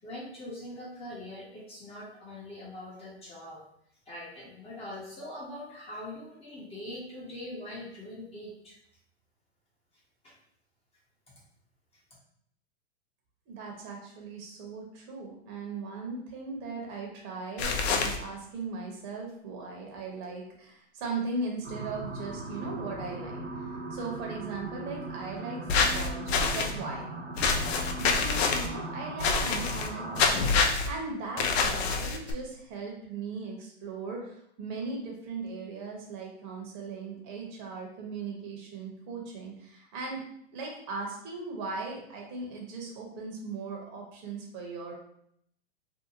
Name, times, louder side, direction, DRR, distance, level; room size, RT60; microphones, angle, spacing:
voice 1, 0.0-3.6 4.1-8.8 10.2-10.3, left 1 dB, 20° left, -5 dB, 0.7 m, -42 dB
voice 2, 13.5-23.4 23.9-27.1 28.0-40.2 40.5-44.9, right 3 dB, 45° right, 0 dB, 0.9 m, -38 dB
sound 1, 17.6-18.2 25.7-26.7 27.4-28.7 29.2-29.9 30.2-30.9 31.4-32.3, left 4 dB, 70° left, 0.5 m, -26 dB
sound 2, 21.6-30.3, right 2 dB, 75° right, 0.9 m, -39 dB
2.7 x 2.2 x 2.7 m, 0.72 s
hypercardioid pair, 120°, 33 cm